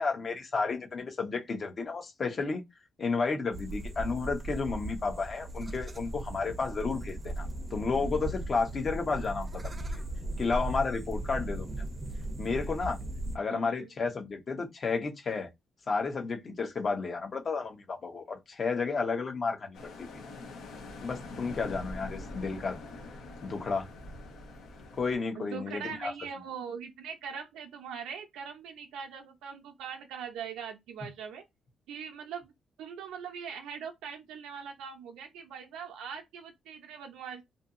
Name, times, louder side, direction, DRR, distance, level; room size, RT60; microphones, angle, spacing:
voice 1, 0.0-2.6 3.0-9.9 10.4-11.7 12.4-13.0 13.3-15.5 15.9-20.1 21.0-22.8 23.4-23.9 24.9-26.1, left 4 dB, 45° left, 0.8 m, -32 dB
sound 1, 3.5-13.4, right 1 dB, 30° right, 0.5 m, -37 dB
voice 2, 13.5-13.9 25.4-31.4 31.9-32.5 32.8-37.4, right 7 dB, 90° right, 0.4 m, -41 dB
sound 2, 19.7-25.2, left 2 dB, 80° left, 0.9 m, -44 dB
2.7 x 2.5 x 2.5 m
cardioid pair, 90°, 0 cm